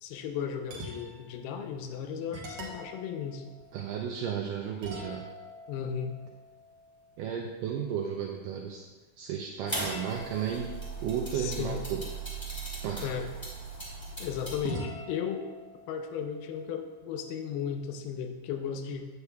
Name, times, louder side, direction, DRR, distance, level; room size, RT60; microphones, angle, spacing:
voice 1, 0.0-3.4 5.7-6.2 11.4-11.8 13.0-13.3 14.2-15.4 15.9-19.1, left 7 dB, 85° left, 6 dB, 2.7 m, -35 dB
sound 1, 0.7-1.3 1.8-1.9 2.3-4.3 4.8-7.5 9.8-12.4 14.6-17.2, equal, 65° right, 1.6 m, -45 dB
voice 2, 3.7-5.3 7.2-8.9 9.2-10.7 11.0-12.1 12.8-13.1, right 8 dB, 85° right, 1 dB, 1.9 m, -33 dB
sound 2, 9.7-14.6, right 3 dB, 25° left, 0.6 m, -38 dB
9.4 x 8.0 x 2.3 m, 1.3 s
omnidirectional pair, 4.4 m